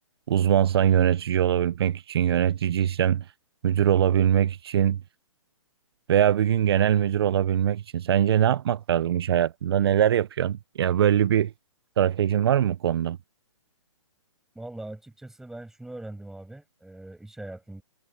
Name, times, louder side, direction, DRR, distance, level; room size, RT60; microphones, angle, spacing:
voice 1, 0.3-3.2 3.6-5.0 6.1-11.5 12.0-13.2, right 10 dB, 50° right, 0.7 m, -22 dB
voice 2, 14.6-17.8, right 2 dB, ahead, 7.0 m, -41 dB
hypercardioid pair, 155°, 17 cm